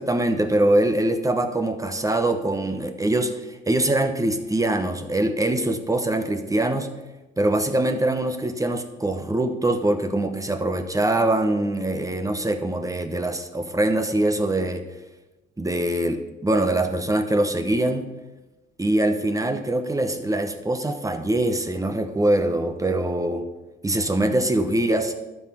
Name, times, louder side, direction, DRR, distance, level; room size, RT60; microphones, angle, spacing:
voice 1, 0.0-6.9 7.4-14.8 15.6-18.1 18.8-23.4 23.8-25.1, right 1 dB, 15° right, 7 dB, 1.0 m, -23 dB
12.5 x 5.9 x 6.1 m, 1.1 s
cardioid pair, 90°, 20 cm